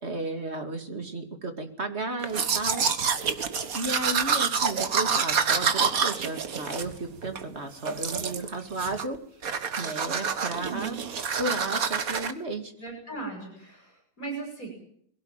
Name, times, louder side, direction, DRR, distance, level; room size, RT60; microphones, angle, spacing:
voice 1, 0.0-2.9 3.7-11.0 11.4-12.7, right 2 dB, 35° right, 7 dB, 2.7 m, -33 dB
Domestic sounds home sounds, 2.2-7.5 7.9-8.5 8.8-9.2 9.4-12.3, right 6 dB, 55° right, 1.8 m, -27 dB
voice 2, 10.6-11.1 12.8-14.7, right 4 dB, 50° left, 1 dB, 8.1 m, -38 dB
21.5 x 17.0 x 9.0 m, 0.65 s
omnidirectional pair, 1.9 m